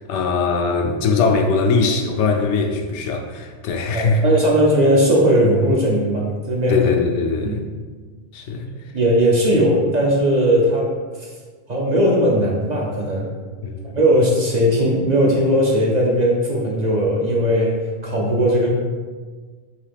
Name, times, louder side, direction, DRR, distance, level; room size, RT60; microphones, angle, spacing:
voice 1, 0.1-4.2 6.7-7.6 8.3-8.7 13.6-13.9, left 4 dB, 90° left, 3 dB, 0.9 m, -21 dB
voice 2, 3.9-6.8 7.4-7.6 8.9-10.9 11.7-13.3 13.9-18.7, equal, 50° right, -3 dB, 0.5 m, -18 dB
3.9 x 2.7 x 3.4 m, 1.5 s
omnidirectional pair, 1.2 m